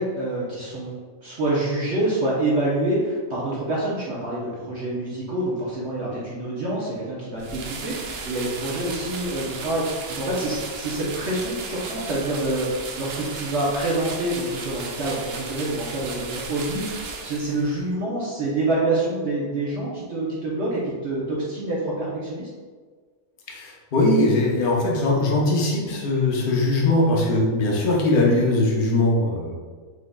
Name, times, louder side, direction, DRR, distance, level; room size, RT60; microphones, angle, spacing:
voice 1, 0.0-22.5, right 2 dB, 55° right, -7 dB, 1.0 m, -27 dB
sound 1, 7.4-17.8, right 4 dB, 70° right, 0.6 m, -35 dB
voice 2, 23.5-29.5, left 2 dB, 45° left, -3 dB, 0.8 m, -21 dB
5.0 x 3.7 x 2.3 m, 1.5 s
omnidirectional pair, 1.5 m